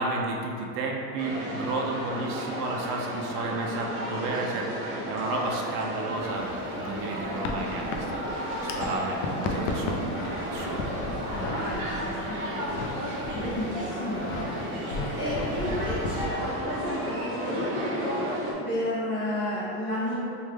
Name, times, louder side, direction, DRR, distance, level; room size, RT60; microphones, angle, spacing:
voice 1, 0.0-4.7 5.1-6.5 6.7-10.0 10.5-10.8, right 2 dB, 90° right, 0 dB, 0.6 m, -32 dB
sound 1, 1.2-18.5, equal, 50° right, 0.9 m, -33 dB
sound 2, 6.2-8.9 9.1-12.9 13.2-13.7 14.1-14.4 14.9-16.3, left 3 dB, 80° left, 0.5 m, -34 dB
voice 2, 11.3-12.9 13.3-14.5 14.9-18.3 18.6-20.2, left 1 dB, 20° left, -14 dB, 0.4 m, -32 dB
3.5 x 2.3 x 3.2 m, 2.7 s
cardioid pair, 180°, 44 cm